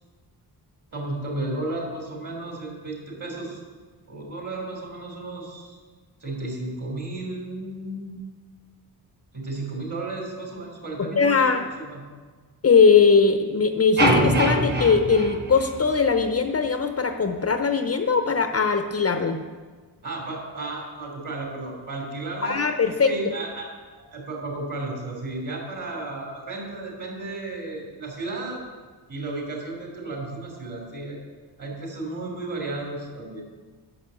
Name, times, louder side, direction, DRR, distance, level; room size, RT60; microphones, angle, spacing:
voice 1, 0.9-3.6 4.1-5.8 6.2-8.2 9.3-11.6 11.8-12.0 20.0-23.7 24.0-28.6 29.1-31.2 31.6-33.4, right 2 dB, 45° right, 0 dB, 3.2 m, -33 dB
voice 2, 11.0-11.6 12.6-19.4 22.4-23.1, left 5 dB, 35° left, 7 dB, 0.6 m, -20 dB
sound 1, 14.0-16.3, right 1 dB, 25° right, 0.9 m, -23 dB
10.0 x 6.7 x 7.5 m, 1.4 s
wide cardioid pair, 155°, 41 cm